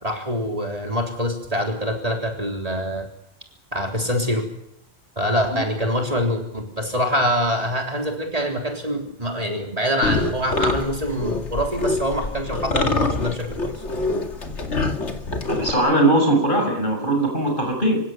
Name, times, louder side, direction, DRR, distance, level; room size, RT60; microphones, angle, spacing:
voice 1, 0.0-3.1 3.7-4.5 5.2-13.8, equal, 30° right, 2 dB, 3.9 m, -25 dB
sound 1, 10.0-15.7, left 3 dB, 75° left, 2.6 m, -25 dB
voice 2, 15.5-18.0, right 1 dB, 45° left, 2 dB, 7.3 m, -20 dB
27.0 x 16.5 x 9.3 m, 0.76 s
omnidirectional pair, 1.2 m